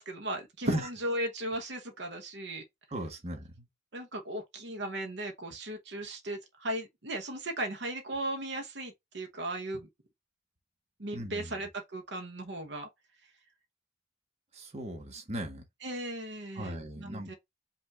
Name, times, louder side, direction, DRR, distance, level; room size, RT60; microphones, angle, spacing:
voice 1, 0.0-2.6 3.9-9.9 11.0-12.9 15.8-17.3, right 1 dB, 65° right, 1.0 m, -36 dB
voice 2, 2.9-3.7 11.1-11.6 14.5-15.6 16.5-17.3, right 1 dB, 35° right, 1.3 m, -38 dB
5.3 x 2.7 x 3.5 m
head